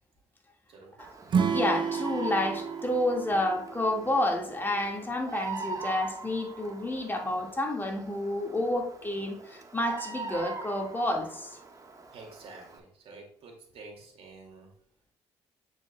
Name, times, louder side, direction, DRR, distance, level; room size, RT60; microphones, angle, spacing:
Bird vocalization bird call bird song, 1.0-12.8, right 4 dB, 30° right, 1.3 m, -43 dB
Acoustic guitar / Strum, 1.3-4.6, right 6 dB, 50° right, 0.9 m, -31 dB
voice 1, 1.5-11.6, left 1 dB, 20° left, 1.7 m, -30 dB
voice 2, 12.1-14.7, right 3 dB, 65° right, 2.1 m, -49 dB
9.4 x 5.1 x 2.2 m
supercardioid pair, 70°, 11 cm